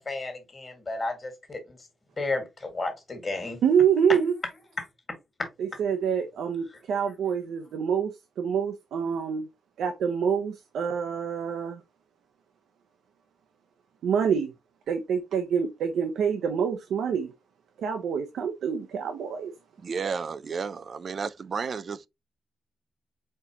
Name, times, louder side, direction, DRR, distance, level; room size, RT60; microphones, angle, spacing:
voice 1, 0.0-1.8 2.2-3.6 4.1-4.2 4.8-4.9, left 2 dB, 30° left, 1.6 m, -32 dB
voice 2, 3.6-4.4 5.6-9.5 9.8-11.8 14.0-14.5 14.9-17.3 17.8-19.5, right 7 dB, 80° right, 0.7 m, -26 dB
voice 3, 19.8-22.1, right 5 dB, 40° right, 0.3 m, -32 dB
4.4 x 4.1 x 2.8 m
cardioid pair, 130°, 0 cm